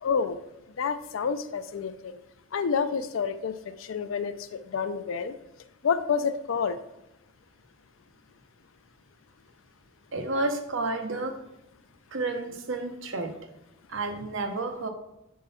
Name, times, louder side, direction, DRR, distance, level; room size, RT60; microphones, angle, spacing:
voice 1, 0.0-0.4 0.8-2.2 2.5-3.5 3.8-5.3 5.8-6.8, left 6 dB, 70° left, 12 dB, 0.4 m, -28 dB
voice 2, 10.1-11.4 12.1-13.3 13.9-14.9, right 2 dB, 65° right, 6 dB, 0.8 m, -30 dB
6.7 x 3.7 x 4.1 m, 0.88 s
head